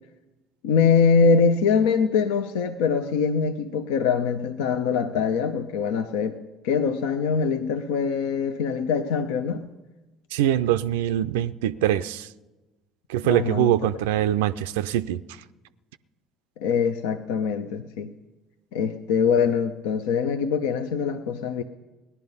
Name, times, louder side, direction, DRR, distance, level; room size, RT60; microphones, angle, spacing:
voice 1, 0.6-9.7 13.2-13.7 16.6-18.1 18.7-21.6, left 6 dB, 75° left, 8 dB, 0.6 m, -23 dB
voice 2, 10.3-12.3 13.1-15.2, right 12 dB, 75° right, 12 dB, 0.4 m, -23 dB
18.0 x 11.0 x 5.5 m, 1.1 s
hypercardioid pair, 60°, 0 cm